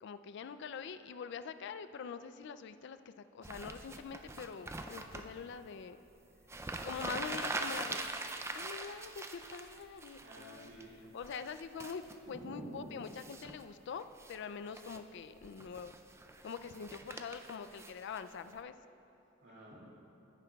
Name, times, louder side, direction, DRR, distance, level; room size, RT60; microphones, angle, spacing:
voice 1, 0.0-6.0 6.8-8.0 8.5-10.7 11.1-15.9 16.4-18.7, left 6 dB, 60° left, 12 dB, 0.4 m, -44 dB
sound 1, 3.4-5.3 6.2-6.3 6.4-10.8 11.2-12.2 13.0-13.6 14.0-14.4 14.7-15.0 15.4-18.5, right 2 dB, 15° right, 0.4 m, -43 dB
voice 2, 10.2-11.0 12.2-12.9 19.4-19.8, right 1 dB, 65° right, -5 dB, 2.3 m, -49 dB
16.5 x 9.5 x 2.3 m, 2.9 s
head